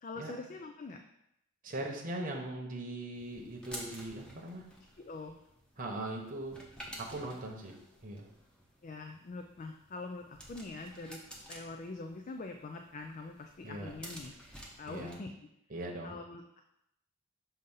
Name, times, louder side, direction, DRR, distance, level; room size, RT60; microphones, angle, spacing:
voice 1, 0.0-1.0 5.0-5.4 7.2-7.3 8.8-11.2 11.5-14.3 14.8-15.3 16.0-16.6, left 3 dB, 40° left, 5 dB, 0.4 m, -44 dB
voice 2, 1.6-4.7 5.8-6.6 7.0-7.8 8.0-8.3 13.6-13.9 14.9-15.2 15.7-16.1, right 1 dB, 40° right, 0 dB, 0.9 m, -40 dB
sound 1, 3.1-15.2, equal, 5° left, 0.8 m, -52 dB
6.5 x 2.7 x 5.4 m, 0.81 s
head